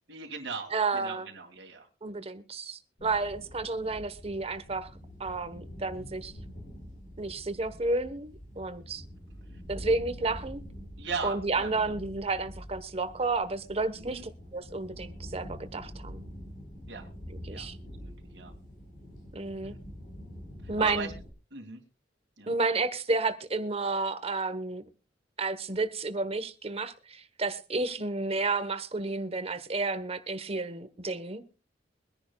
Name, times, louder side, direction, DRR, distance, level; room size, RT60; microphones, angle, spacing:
voice 1, 0.1-1.9 9.5-9.6 11.0-11.9 14.0-14.2 16.9-17.1 17.5-18.5 19.6-19.7 20.6-21.1 21.5-21.8 22.4-22.5, right 4 dB, 80° right, 2.1 m, -39 dB
voice 2, 0.7-1.3 2.0-4.9 5.2-6.3 7.2-9.0 9.7-10.6 11.2-16.2 17.5-17.8 19.3-19.7 20.7-21.1 22.5-24.8 25.4-31.4, right 3 dB, 35° right, 1.1 m, -31 dB
sound 1, 3.0-21.3, equal, 50° left, 4.3 m, -45 dB
23.5 x 10.5 x 2.3 m
head